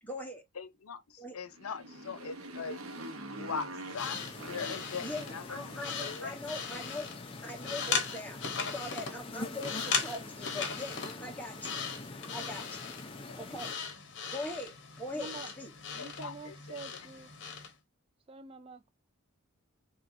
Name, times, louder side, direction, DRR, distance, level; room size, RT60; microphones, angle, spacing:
voice 1, 0.0-0.4 1.2-1.4 5.0-7.1 7.4-8.4 8.7-11.8 12.3-12.8 13.3-13.7 14.3-15.7, left 1 dB, 5° left, 1.2 m, -41 dB
voice 2, 0.6-2.8 3.4-5.4 5.7-6.4 13.2-13.4 16.0-16.8, left 5 dB, 85° left, 0.6 m, -41 dB
Motorcycle, 1.5-6.1, right 1 dB, 70° right, 1.1 m, -45 dB
sound 1, 3.9-17.7, left 5 dB, 55° left, 1.0 m, -39 dB
sound 2, 4.0-13.7, left 2 dB, 25° left, 0.6 m, -45 dB
voice 3, 15.2-15.5 15.9-17.3 18.3-18.9, right 3 dB, 25° right, 0.4 m, -46 dB
4.6 x 3.3 x 2.6 m
head